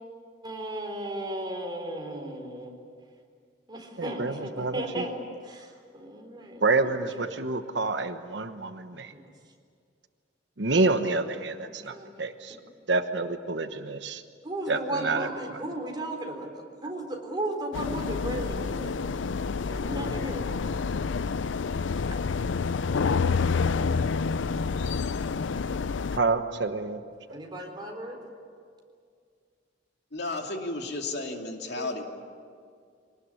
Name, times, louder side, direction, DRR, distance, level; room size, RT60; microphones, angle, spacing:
voice 1, 0.4-2.7 3.7-6.6 7.3-7.4 9.1-9.2 11.6-12.1 14.4-16.5 16.8-19.0 19.7-21.1 27.3-28.2 31.8-31.9, right 1 dB, 25° right, 2 dB, 3.9 m, -35 dB
voice 2, 4.0-5.0 6.6-9.1 10.6-12.6 12.9-14.2 14.7-15.3 26.1-27.0, right 3 dB, 65° right, 8 dB, 1.1 m, -28 dB
sound 1, 17.7-26.2, left 5 dB, 90° left, 0.5 m, -28 dB
voice 3, 30.1-32.0, left 2 dB, 60° left, 2 dB, 2.7 m, -33 dB
24.5 x 19.0 x 9.8 m, 2.2 s
head